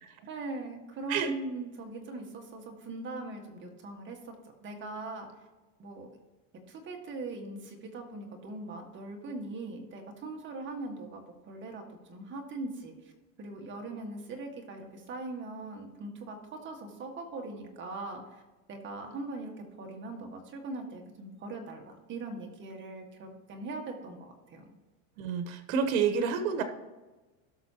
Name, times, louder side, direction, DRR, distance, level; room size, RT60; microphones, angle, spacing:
voice 1, 0.3-4.4 4.6-5.3 5.8-6.1 6.7-11.8 12.1-12.9 13.4-16.4 16.6-18.4 18.7-24.7, right 2 dB, 30° right, 2 dB, 1.7 m, -40 dB
voice 2, 25.2-26.6, right 6 dB, 80° right, 7 dB, 1.2 m, -29 dB
17.5 x 6.2 x 2.9 m, 1.2 s
supercardioid pair, 145°, 42 cm